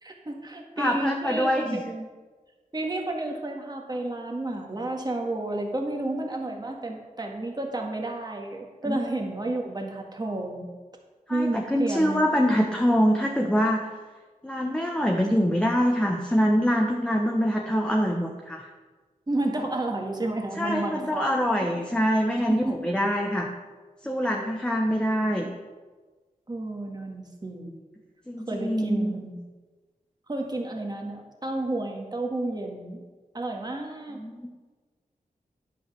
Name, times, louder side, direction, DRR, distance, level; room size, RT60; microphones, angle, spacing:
voice 1, 0.0-2.1 2.7-10.7 11.3-12.7 19.3-21.3 21.7-21.8 22.4-22.9 26.5-27.8 28.5-29.4 30.3-33.0 33.3-34.2, right 2 dB, 30° right, 1 dB, 1.8 m, -31 dB
voice 2, 0.8-1.8 8.9-9.0 11.3-13.9 14.4-18.7 20.6-23.5 24.0-25.5 28.3-29.2 34.1-34.7, equal, 5° left, 1 dB, 0.9 m, -24 dB
10.0 x 5.6 x 6.9 m, 1.3 s
wide cardioid pair, 85°, 15 cm